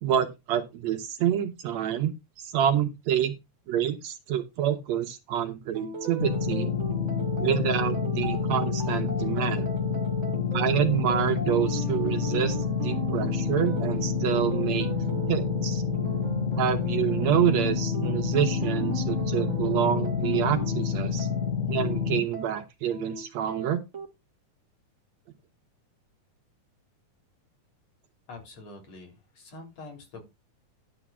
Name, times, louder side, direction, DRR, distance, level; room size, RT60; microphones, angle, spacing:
voice 1, 0.0-3.4 3.7-6.7 7.4-9.7 10.5-14.9 15.3-15.8 16.6-21.3 21.7-23.8, right 10 dB, 70° right, 2.2 m, -27 dB
sound 1, 5.7-24.1, right 4 dB, 35° right, 1.1 m, -37 dB
sound 2, 6.2-22.2, left 7 dB, 80° left, 2.7 m, -28 dB
voice 2, 28.3-30.3, left 3 dB, 55° left, 4.3 m, -45 dB
11.0 x 3.8 x 7.4 m
omnidirectional pair, 3.5 m